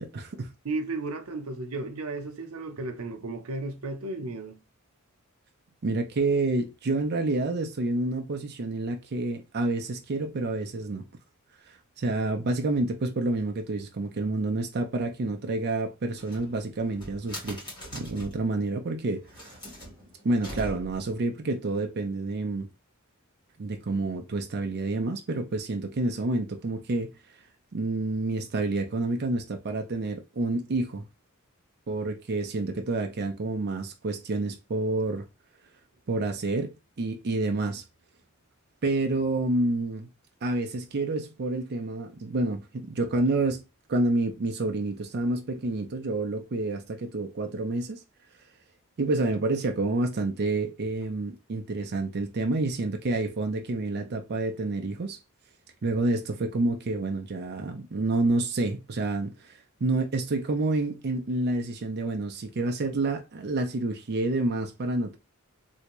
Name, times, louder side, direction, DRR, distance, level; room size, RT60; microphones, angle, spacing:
voice 1, 0.0-0.5 5.8-11.1 11.7-17.6 17.9-19.6 20.2-22.7 23.6-27.1 27.7-31.1 31.9-35.2 36.1-37.8 38.8-40.1 40.4-43.6 43.9-48.0 49.0-55.2 55.8-65.2, right 2 dB, 50° right, 0.5 m, -28 dB
voice 2, 0.6-4.6, right 3 dB, 85° right, 0.7 m, -34 dB
sound 1, 16.1-18.5 19.2-21.1, equal, 20° left, 1.8 m, -42 dB
3.3 x 2.7 x 3.0 m
head